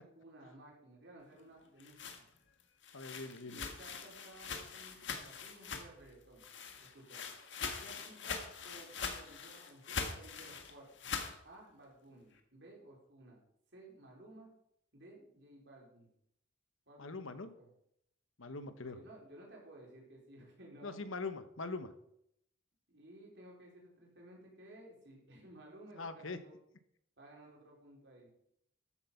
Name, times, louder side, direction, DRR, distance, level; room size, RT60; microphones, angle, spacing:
voice 1, 0.0-2.3 3.4-6.4 6.9-7.3 7.8-10.9 11.4-13.4 13.7-14.5 14.9-16.1 16.9-17.7 18.8-21.0 22.9-26.5 27.2-28.3, right 1 dB, 55° right, -2 dB, 4.7 m, -56 dB
sound 1, 1.6-6.1 6.4-11.4, left 5 dB, 60° left, 1.6 m, -43 dB
voice 2, 2.9-3.6 17.0-17.5 18.4-19.0 20.8-21.9 26.0-26.4, left 3 dB, 75° left, 11 dB, 1.1 m, -42 dB
13.5 x 8.0 x 5.7 m, 0.74 s
head